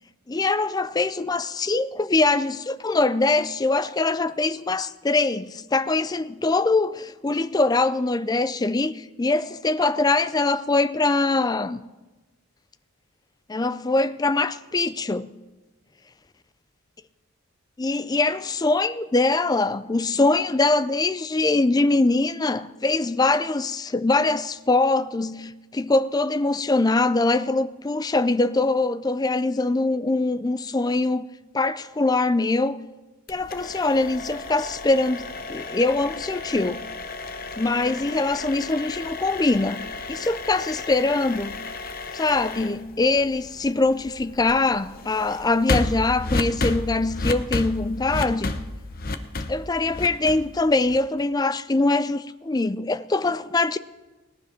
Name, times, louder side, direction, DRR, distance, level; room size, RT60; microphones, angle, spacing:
voice 1, 0.3-11.8 13.5-15.3 17.8-31.2 31.5-32.8 33.3-36.8 37.6-39.8 40.1-41.5 42.1-48.5 49.5-53.8, left 3 dB, 15° left, 0.4 m, -23 dB
sound 1, 33.3-51.2, left 2 dB, 40° left, 0.8 m, -32 dB
17.5 x 10.5 x 5.8 m
head